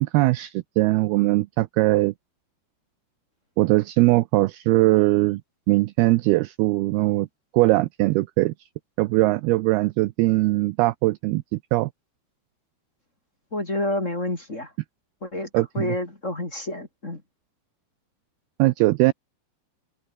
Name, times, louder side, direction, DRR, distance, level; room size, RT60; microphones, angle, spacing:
voice 1, 0.0-2.1 3.6-5.4 5.7-7.3 7.5-8.5 9.0-11.9 15.5-16.0 18.6-19.1, right 20 dB, 80° right, 2.3 m, -21 dB
voice 2, 13.5-14.7 15.2-15.5 15.7-17.2, left 1 dB, 20° left, 3.1 m, -29 dB
omnidirectional pair, 5.1 m